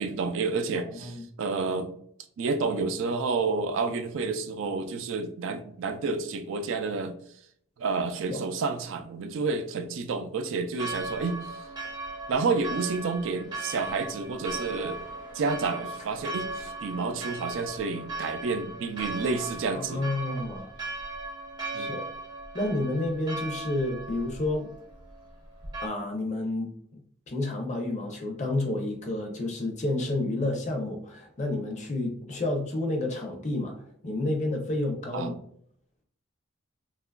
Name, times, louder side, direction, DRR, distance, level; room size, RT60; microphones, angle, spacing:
voice 1, 0.0-1.9 2.4-7.2 7.8-11.5 12.3-15.0 15.3-20.0 21.7-22.0 35.1-35.3, right 4 dB, 65° right, 8 dB, 0.3 m, -30 dB
Church bell, 10.8-25.9, right 2 dB, 20° right, 0.6 m, -38 dB
voice 2, 19.7-20.7 21.8-22.1 22.5-24.7 25.8-27.0 27.3-33.7 34.0-35.4, left 2 dB, 35° left, 2 dB, 0.6 m, -30 dB
2.8 x 2.3 x 2.2 m, 0.65 s
head